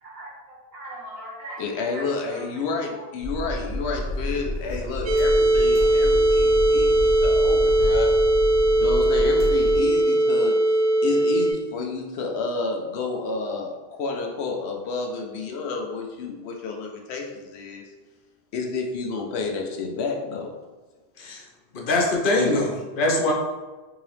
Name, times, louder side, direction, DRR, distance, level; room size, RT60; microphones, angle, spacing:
voice 1, 0.0-1.6 1.9-2.5 2.9-3.0 3.4-3.5 22.3-22.6 23.0-23.1, right 1 dB, 70° right, -3 dB, 1.2 m, -36 dB
voice 2, 1.6-8.2 8.8-10.5 11.0-17.8 18.5-20.5, left 4 dB, 85° left, 1 dB, 0.9 m, -30 dB
sound 1, 3.2-9.8, left 1 dB, 90° right, 1.3 m, -30 dB
sound 2, 5.1-11.5, right 1 dB, 55° right, 0.4 m, -19 dB
voice 3, 21.7-23.3, left 2 dB, 60° left, 0 dB, 0.8 m, -23 dB
3.7 x 2.9 x 3.1 m, 1.2 s
omnidirectional pair, 1.1 m